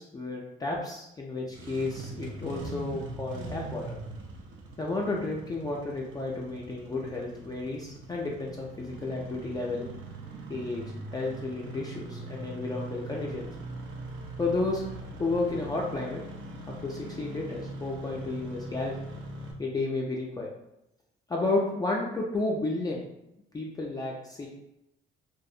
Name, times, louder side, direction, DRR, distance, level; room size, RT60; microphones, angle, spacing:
voice 1, 0.0-4.0 4.8-9.9 10.5-10.8 11.1-13.5 14.4-14.8 15.2-16.2 16.8-19.0 19.6-20.5 21.3-23.1 23.5-24.5, left 2 dB, 20° left, -3 dB, 0.3 m, -32 dB
Engine starting, 1.4-19.5, right 2 dB, 70° right, 0.5 m, -41 dB
2.3 x 2.1 x 2.6 m, 0.85 s
cardioid pair, 90°, 20 cm